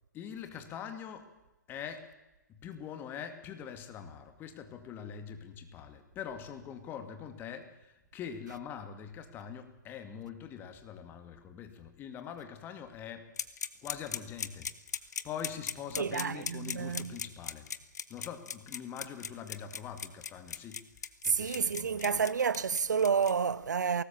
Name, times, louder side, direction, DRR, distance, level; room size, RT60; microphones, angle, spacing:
voice 1, 0.1-1.3 1.7-2.1 2.5-13.3 13.8-14.7 15.2-17.7 18.1-20.8 21.2-22.2, left 8 dB, 20° left, 2.5 m, -43 dB
sound 1, 13.4-23.3, left 7 dB, 60° left, 1.4 m, -37 dB
voice 2, 16.0-17.2 21.3-24.0, right 6 dB, 65° right, 0.8 m, -30 dB
22.0 x 19.0 x 7.3 m
figure-of-eight pair, 125°, 10 cm